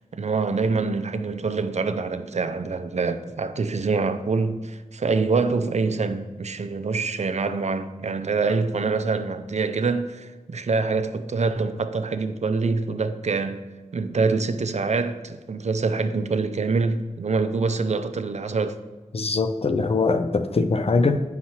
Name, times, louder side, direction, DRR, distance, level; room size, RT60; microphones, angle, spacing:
voice 1, 0.1-13.7 13.9-18.8, right 4 dB, 55° right, 0.4 m, -25 dB
voice 2, 19.1-21.2, left 3 dB, 45° left, 0.5 m, -22 dB
7.6 x 5.7 x 2.8 m
cardioid pair, 45°, 14 cm